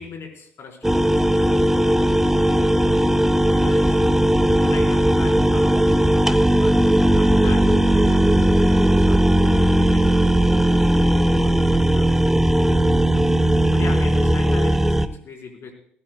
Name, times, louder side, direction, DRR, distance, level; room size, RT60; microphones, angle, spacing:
voice 1, 0.0-1.7 3.5-4.0 4.6-5.8 6.2-10.3 10.7-13.3 13.7-15.7, left 4 dB, 50° left, 3 dB, 4.1 m, -40 dB
sound 1, 0.8-15.1, right 1 dB, 5° right, 0.8 m, -17 dB
19.5 x 15.5 x 2.2 m, 0.66 s
hypercardioid pair, 50°, 6 cm